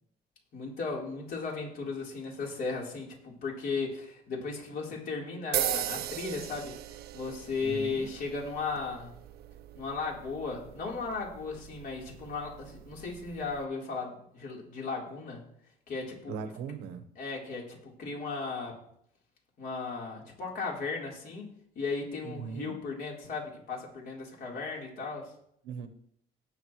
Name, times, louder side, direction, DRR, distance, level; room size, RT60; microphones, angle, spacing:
voice 1, 0.5-6.7 7.1-9.1 9.8-15.4 15.9-16.3 17.2-18.8 19.6-21.5 21.8-25.3, left 4 dB, 60° left, -2 dB, 3.9 m, -36 dB
sound 1, 5.5-13.6, right 13 dB, 70° right, 0.7 m, -39 dB
voice 2, 7.6-8.1 16.3-17.0 22.2-22.8 25.6-25.9, right 6 dB, 85° right, 9 dB, 1.1 m, -39 dB
18.5 x 6.6 x 3.2 m, 0.69 s
cardioid pair, 110°, 17 cm